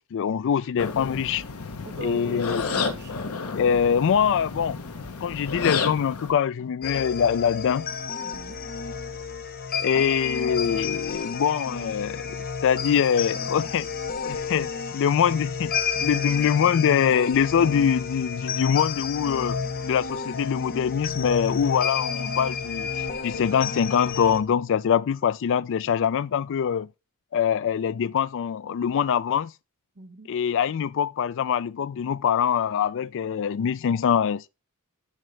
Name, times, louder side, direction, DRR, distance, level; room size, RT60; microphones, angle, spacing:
voice 1, 0.0-1.4 2.0-2.7 3.5-4.8 5.2-7.9 9.8-12.4 12.6-13.9 14.2-19.6 19.8-26.9 27.3-29.5 30.3-34.5, left 8 dB, 60° left, 0.3 m, -24 dB
sound 1, 0.8-6.3, left 4 dB, 90° left, 0.9 m, -31 dB
voice 2, 1.8-3.2 8.2-8.6 29.9-30.3, right 2 dB, 50° right, 1.1 m, -40 dB
sound 2, 6.8-24.4, left 5 dB, 45° left, 0.9 m, -31 dB
10.5 x 3.9 x 3.2 m
head